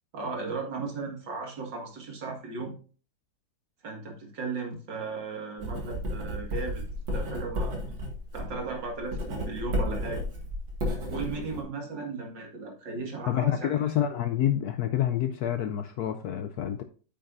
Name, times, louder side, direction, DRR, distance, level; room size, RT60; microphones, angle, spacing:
voice 1, 0.1-2.8 3.8-6.8 7.1-7.8 8.3-10.2 11.1-13.7, right 4 dB, 70° right, 1 dB, 2.5 m, -36 dB
Writing, 5.6-11.6, equal, 90° right, 2.8 m, -33 dB
voice 2, 13.3-16.8, left 11 dB, 75° left, 8 dB, 0.9 m, -28 dB
8.8 x 7.5 x 2.6 m, 0.39 s
omnidirectional pair, 2.1 m